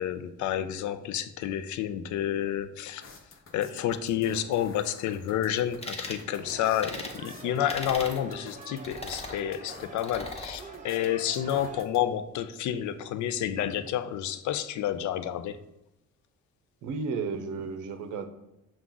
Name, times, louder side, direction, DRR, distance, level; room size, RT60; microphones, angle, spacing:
voice 1, 0.0-3.0 3.5-15.6, left 10 dB, 70° left, 12 dB, 0.4 m, -30 dB
sound 1, 3.0-12.0, left 4 dB, 45° left, 0.8 m, -51 dB
sound 2, 5.8-6.2 6.8-7.2 7.7-8.2 8.8-9.4 10.0-10.6, left 2 dB, 20° left, 0.9 m, -38 dB
sound 3, 6.3-11.9, right 4 dB, 25° right, 0.5 m, -45 dB
voice 2, 16.8-18.3, right 4 dB, 85° right, 7 dB, 0.6 m, -33 dB
5.9 x 2.4 x 3.8 m, 0.94 s
cardioid pair, 90°, 30 cm